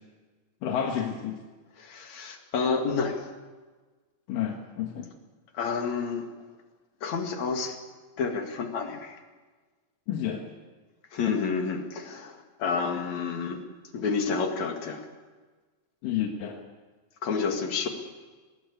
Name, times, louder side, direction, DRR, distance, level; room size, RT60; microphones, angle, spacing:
voice 1, 0.6-1.4 4.3-5.1 10.1-10.4 16.0-16.6, left 9 dB, 80° left, 2 dB, 3.1 m, -30 dB
voice 2, 1.8-3.3 5.5-6.3 7.0-7.8 8.2-9.2 11.1-13.6 13.9-15.1 17.2-17.9, left 5 dB, 60° left, 4 dB, 3.3 m, -29 dB
20.0 x 19.0 x 8.2 m, 1.3 s
omnidirectional pair, 3.8 m